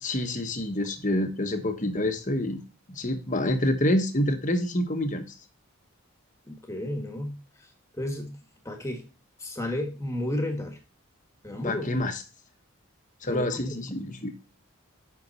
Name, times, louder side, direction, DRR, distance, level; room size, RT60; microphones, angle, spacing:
voice 1, 0.0-2.6 2.9-5.3 11.6-12.2 13.2-14.3, left 1 dB, 35° left, 7 dB, 1.1 m, -27 dB
voice 2, 6.5-7.7 8.0-8.4 8.6-9.0 9.4-10.8 11.4-11.9 13.3-13.8, left 1 dB, 15° left, 4 dB, 1.6 m, -32 dB
8.0 x 5.8 x 4.2 m, 0.32 s
head